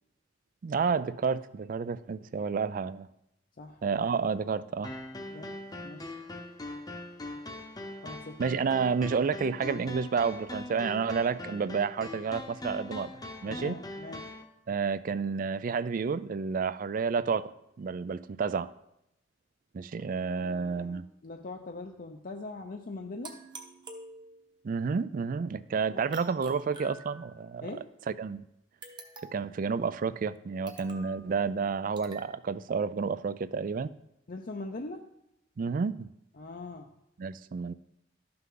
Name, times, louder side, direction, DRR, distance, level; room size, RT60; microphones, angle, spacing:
voice 1, 0.6-3.1 3.8-4.9 8.4-13.8 14.7-17.5 17.8-18.7 19.7-21.0 24.6-27.7 28.1-28.4 29.3-33.9 35.6-36.1 37.2-37.7, right 5 dB, 50° right, 0.4 m, -30 dB
sound 1, 4.8-14.4, left 1 dB, 20° left, 0.8 m, -41 dB
voice 2, 5.3-6.1 8.0-8.4 13.5-14.3 20.3-23.4 25.9-26.0 27.6-27.9 34.3-35.1 36.4-36.9, left 3 dB, 50° left, 0.6 m, -42 dB
kalimba - simple effect, 23.2-24.6 26.1-27.5 28.8-29.6 30.7-31.2 32.0-32.3, right 2 dB, 25° right, 1.0 m, -48 dB
12.0 x 5.8 x 3.8 m
head